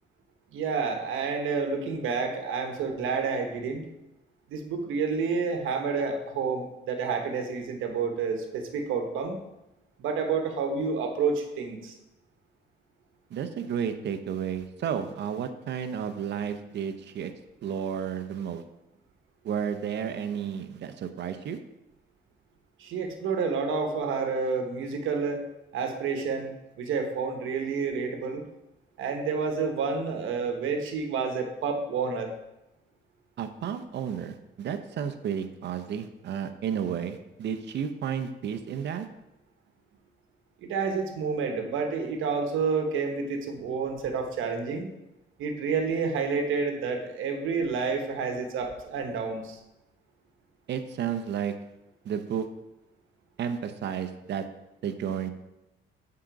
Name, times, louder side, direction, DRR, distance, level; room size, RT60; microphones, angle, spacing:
voice 1, 0.5-3.9 4.5-9.4 10.0-11.9 22.8-25.4 25.7-28.4 29.0-32.3 40.6-44.9 45.4-49.6, right 5 dB, 85° right, 4 dB, 1.0 m, -29 dB
voice 2, 13.3-17.3 17.6-18.6 19.4-21.6 33.4-39.1 50.7-51.5 52.0-52.5 53.4-54.4 54.8-55.3, right 8 dB, 60° right, 8 dB, 0.6 m, -32 dB
7.6 x 3.8 x 4.7 m, 0.95 s
cardioid pair, 90°, 20 cm